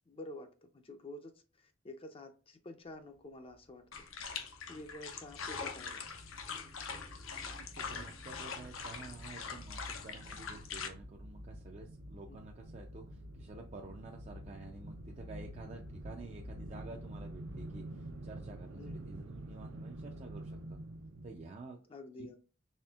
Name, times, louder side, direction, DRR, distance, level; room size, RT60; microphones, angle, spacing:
voice 1, 0.1-4.1 4.7-6.1 7.9-8.1 12.3-12.4 18.8-19.2 21.9-22.4, left 1 dB, 30° left, 0.4 m, -49 dB
sound 1, 3.9-10.9, left 5 dB, 85° left, 0.6 m, -43 dB
sound 2, 4.1-4.2 4.5-4.6 4.8-21.5, right 1 dB, 85° right, 0.6 m, -48 dB
voice 2, 7.5-20.8 21.2-21.8 22.2-22.4, right 3 dB, 35° right, 0.4 m, -51 dB
4.2 x 3.3 x 2.3 m
head